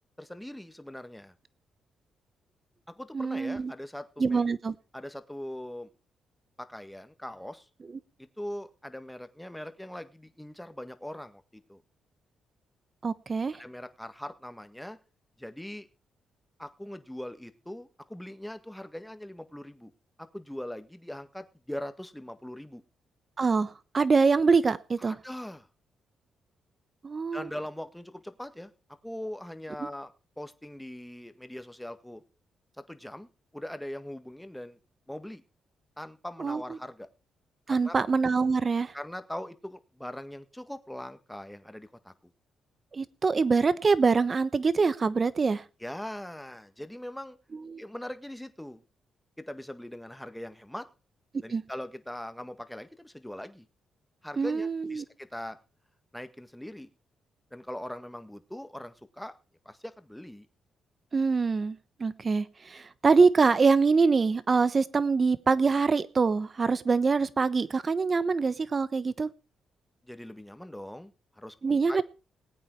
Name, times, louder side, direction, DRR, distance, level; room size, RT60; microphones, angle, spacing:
voice 1, 0.2-1.3 2.9-4.4 4.9-5.9 6.6-7.7 8.2-11.8 13.6-15.0 15.4-15.9 16.6-19.9 20.2-22.8 25.0-25.7 27.3-28.7 29.0-30.1 30.4-32.2 32.8-34.8 35.1-35.4 36.0-37.1 37.7-37.9 38.9-42.1 45.8-47.4 47.8-48.8 49.4-50.9 51.4-53.7 54.2-55.6 56.1-56.9 57.5-59.3 59.6-60.5 70.0-72.0, left 1 dB, 5° left, 10 dB, 1.7 m, -41 dB
voice 2, 3.1-3.7 4.2-4.7 13.0-13.6 23.4-25.2 27.0-27.5 36.4-36.6 37.7-38.9 42.9-45.6 47.7-47.8 51.5-51.6 54.4-55.0 61.1-69.3 71.6-72.0, right 4 dB, 40° right, 16 dB, 1.1 m, -24 dB
19.5 x 8.6 x 4.7 m, 0.34 s
supercardioid pair, 55°, 0 cm